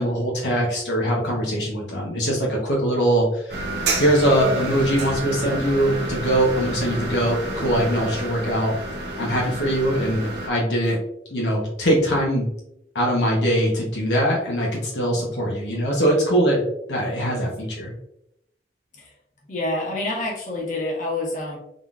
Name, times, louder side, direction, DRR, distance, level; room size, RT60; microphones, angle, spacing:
voice 1, 0.0-3.6 4.0-8.7 9.2-11.0 11.3-12.5 12.9-17.9, right 1 dB, 80° left, -2 dB, 1.0 m, -22 dB
sound 1, 3.5-10.5, right 1 dB, 70° right, 0.9 m, -29 dB
voice 2, 19.5-21.6, left 2 dB, 45° left, -4 dB, 1.4 m, -27 dB
3.8 x 3.7 x 2.4 m, 0.77 s
head